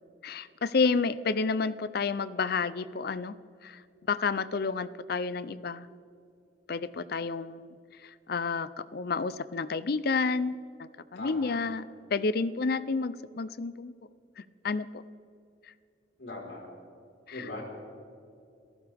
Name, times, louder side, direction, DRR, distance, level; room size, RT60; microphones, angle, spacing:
voice 1, 0.2-3.4 3.6-3.8 4.1-5.9 6.7-7.6 8.0-11.8 12.1-13.9 14.4-15.0 17.3-17.5, left 4 dB, 55° left, 16 dB, 0.5 m, -30 dB
voice 2, 11.2-11.6 16.2-16.6 17.3-17.6, left 2 dB, 80° left, -1 dB, 4.5 m, -40 dB
28.0 x 14.5 x 3.5 m, 2.5 s
head